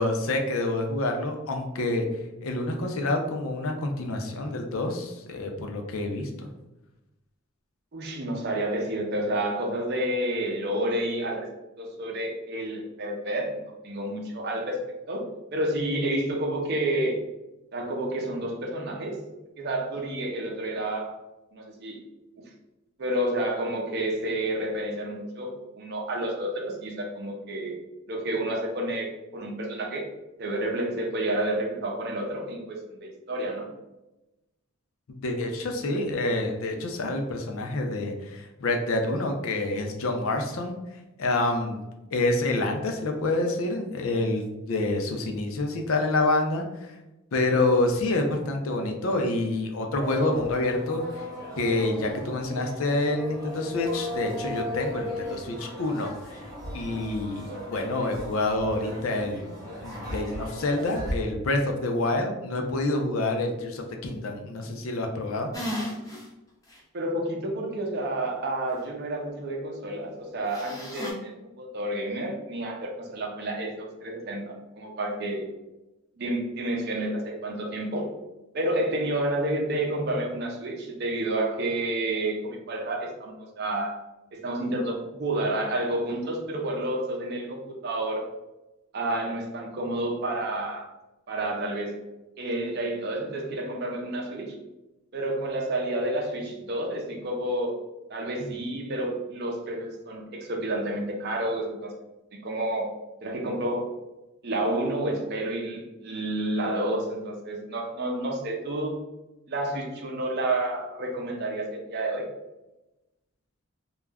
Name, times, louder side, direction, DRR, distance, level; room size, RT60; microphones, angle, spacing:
voice 1, 0.0-2.1 2.4-6.5 35.1-40.7 41.2-41.8 42.1-47.0 47.3-51.3 51.6-56.4 56.7-59.5 59.8-65.5, left 2 dB, 75° left, 3 dB, 0.5 m, -27 dB
voice 2, 7.9-11.5 11.8-14.8 15.1-15.2 15.5-17.2 17.7-19.2 19.6-21.2 21.5-22.0 22.4-22.5 23.0-27.8 28.1-30.0 30.4-33.7 66.9-75.5 76.2-78.1 78.5-84.0 84.3-88.2 88.9-90.9 91.3-92.0 92.4-94.6 95.1-97.8 98.1-101.9 102.3-102.9 103.2-103.9 104.4-109.0 109.5-112.3, right 1 dB, 50° right, 0 dB, 0.5 m, -30 dB
sound 1, 50.0-61.1, equal, 15° right, 0.9 m, -36 dB
sound 2, 65.5-66.2 66.7-66.8 70.5-71.1, equal, 15° left, 0.5 m, -34 dB
2.3 x 2.1 x 3.4 m, 0.99 s
head